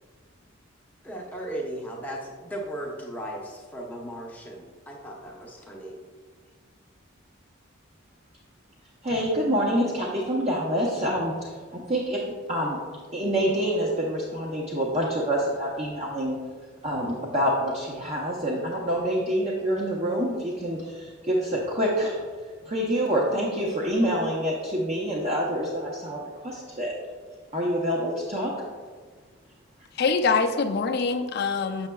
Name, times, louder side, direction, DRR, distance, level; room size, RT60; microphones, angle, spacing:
voice 1, 1.0-6.0, right 1 dB, 10° left, -2 dB, 0.7 m, -36 dB
voice 2, 9.0-12.8 13.1-16.4 16.8-22.2 22.6-26.9 27.5-28.5, equal, 35° right, -4 dB, 0.7 m, -27 dB
voice 3, 29.9-31.9, left 4 dB, 50° left, 7 dB, 0.4 m, -24 dB
7.2 x 6.4 x 2.3 m, 1.5 s
head